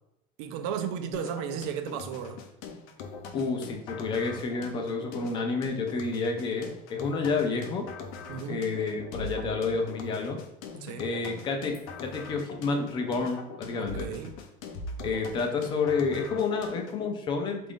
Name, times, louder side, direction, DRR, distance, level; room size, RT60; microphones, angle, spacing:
voice 1, 0.4-2.4 8.3-8.7 10.7-11.1 13.8-14.4, right 8 dB, 80° right, 0.5 m, -34 dB
sound 1, 1.1-17.1, left 3 dB, 85° left, 0.6 m, -42 dB
voice 2, 3.3-7.9 8.5-10.4 11.0-11.8 12.0-14.1 15.0-17.6, left 4 dB, 30° left, 0.4 m, -29 dB
3.5 x 2.5 x 3.5 m
cardioid pair, 170°, 16 cm